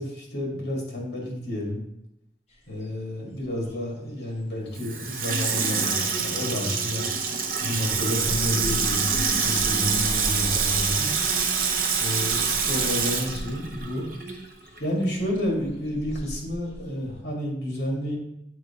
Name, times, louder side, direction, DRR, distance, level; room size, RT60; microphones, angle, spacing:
voice 1, 0.0-1.8 2.7-7.1 7.6-11.1 12.0-14.0 14.8-18.2, left 1 dB, 70° left, -2 dB, 1.9 m, -30 dB
sound 1, 2.5-3.0 3.2-17.2, equal, 35° left, 1.0 m, -40 dB
Water tap faucet / Sink (filling or washing), 4.7-14.5 14.8-14.9, right 6 dB, 50° right, 0.6 m, -26 dB
7.8 x 4.2 x 2.9 m, 0.80 s
head